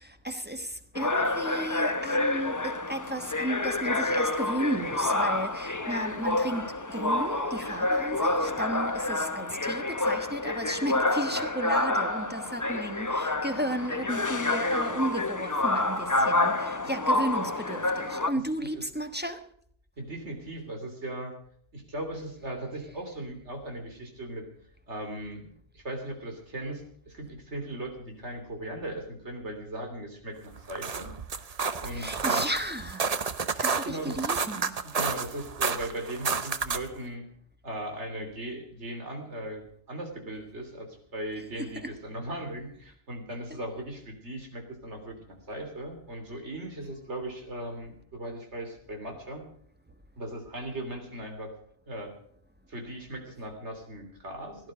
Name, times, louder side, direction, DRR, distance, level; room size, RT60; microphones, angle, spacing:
voice 1, 0.2-0.6 0.9-6.7 6.9-19.4 32.0-33.0 33.6-34.7, right 1 dB, 10° right, 1.3 m, -33 dB
sound 1, 1.0-18.3, left 2 dB, 20° left, 0.8 m, -28 dB
voice 2, 20.0-21.3 21.7-24.4 24.9-25.5 25.7-31.1 31.8-32.5 33.8-34.2 34.9-37.2 37.6-49.4 50.2-51.5 51.9-52.1 52.7-54.7, right 1 dB, 80° right, 3.6 m, -38 dB
sound 2, 30.6-37.0, right 5 dB, 40° right, 0.8 m, -31 dB
17.0 x 12.0 x 5.1 m
omnidirectional pair, 1.2 m